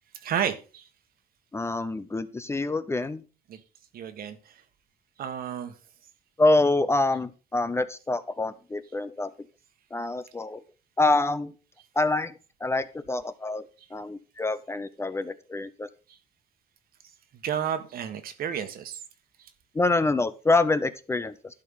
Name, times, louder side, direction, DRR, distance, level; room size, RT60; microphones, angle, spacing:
voice 1, 0.1-0.9 3.5-3.6 3.9-4.4 5.2-5.7 17.4-19.0, right 9 dB, 60° right, 10 dB, 1.5 m, -31 dB
voice 2, 1.5-3.2 6.4-9.3 9.9-10.6 11.0-11.5 12.0-12.3 12.6-13.7 13.9-15.9 19.7-21.3, left 2 dB, 15° left, 13 dB, 0.6 m, -26 dB
11.5 x 4.5 x 5.6 m, 0.34 s
cardioid pair, 110°, 17 cm